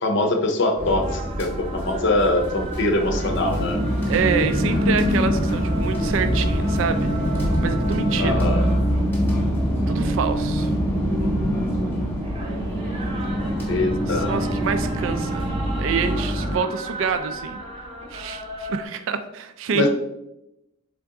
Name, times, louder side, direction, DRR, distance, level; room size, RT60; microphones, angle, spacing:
voice 1, 0.0-3.8 8.2-8.7 10.9-12.2 13.7-14.5 19.7-19.9, left 2 dB, 55° left, 5 dB, 0.6 m, -24 dB
sound 1, 0.8-16.6, equal, 10° left, 0.9 m, -24 dB
sound 2, 1.0-18.8, right 1 dB, 25° right, 0.6 m, -37 dB
voice 2, 4.1-7.1 7.6-8.3 9.9-10.7 14.1-15.5 15.8-17.6 18.1-19.9, right 6 dB, 65° right, 9 dB, 0.3 m, -26 dB
3.8 x 3.5 x 3.6 m, 0.88 s
head